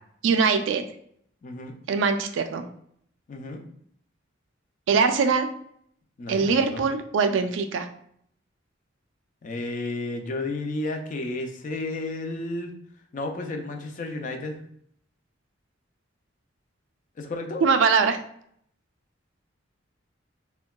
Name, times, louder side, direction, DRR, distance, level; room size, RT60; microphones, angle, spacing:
voice 1, 0.2-0.8 1.9-2.7 4.9-5.5 6.3-7.9 17.6-18.2, right 5 dB, 70° right, 7 dB, 0.3 m, -22 dB
voice 2, 1.4-1.8 3.3-3.6 6.2-6.8 9.4-12.7 13.1-14.6 17.2-17.6, left 2 dB, 40° left, 4 dB, 0.4 m, -32 dB
3.6 x 2.2 x 2.2 m, 0.67 s
head